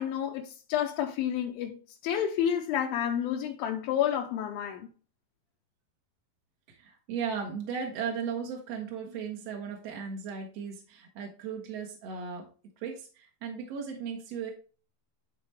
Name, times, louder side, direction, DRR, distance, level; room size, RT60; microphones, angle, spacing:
voice 1, 0.0-4.9, left 9 dB, 80° left, 2.5 m, -30 dB
voice 2, 6.7-12.5 12.8-14.5, right 6 dB, 60° right, 1.7 m, -36 dB
11.0 x 4.1 x 3.1 m
omnidirectional pair, 4.3 m